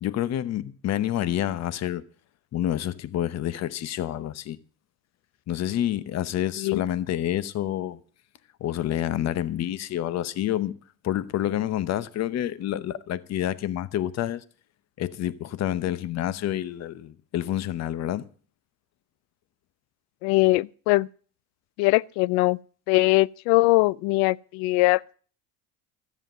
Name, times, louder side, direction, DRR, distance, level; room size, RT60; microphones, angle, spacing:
voice 1, 0.0-2.0 2.5-4.6 5.5-8.0 8.6-10.7 11.0-14.4 15.0-18.3, left 12 dB, 40° left, 0.9 m, -28 dB
voice 2, 20.2-21.1 21.8-22.6 22.9-25.2, left 21 dB, 80° left, 0.5 m, -21 dB
14.0 x 7.4 x 7.7 m
cardioid pair, 130°, 40 cm